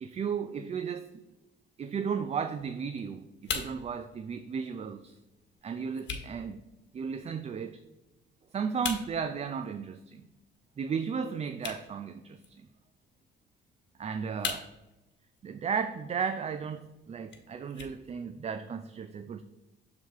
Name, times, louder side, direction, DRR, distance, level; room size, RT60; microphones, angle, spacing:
voice 1, 0.0-1.1 1.8-5.2 5.6-6.6 6.9-7.8 8.5-10.3 10.8-12.7 14.0-14.7 15.4-19.4, right 6 dB, 35° right, 10 dB, 0.4 m, -34 dB
sound 1, 2.6-18.6, left 6 dB, 65° left, 1.1 m, -44 dB
6.6 x 3.5 x 4.7 m, 1.0 s
cardioid pair, 90°, 20 cm